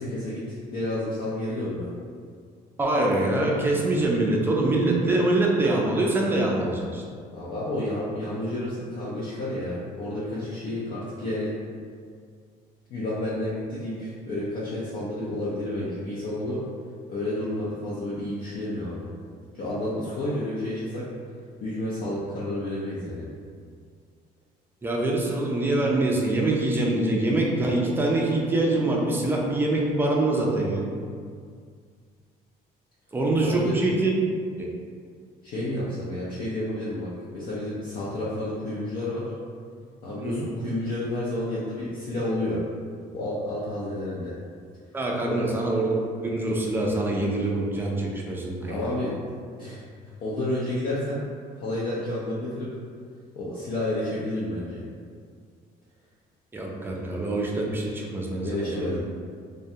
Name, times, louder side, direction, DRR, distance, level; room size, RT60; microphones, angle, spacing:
voice 1, 0.0-1.9 7.3-11.6 12.9-16.6 17.1-19.1 19.5-21.1 21.6-23.3 33.4-33.8 35.4-39.3 40.0-42.6 43.1-44.4 45.3-45.5 48.7-49.2 49.6-49.8 50.2-51.2 51.6-52.7 53.3-54.8 58.4-59.0, left 1 dB, 55° left, -8 dB, 0.5 m, -30 dB
voice 2, 2.8-7.0 24.8-30.9 33.1-34.1 34.6-34.7 40.2-40.5 44.9-48.8 56.5-59.0, right 2 dB, 15° right, -2 dB, 0.4 m, -24 dB
2.2 x 2.2 x 2.7 m, 2.1 s
cardioid pair, 110°, 17 cm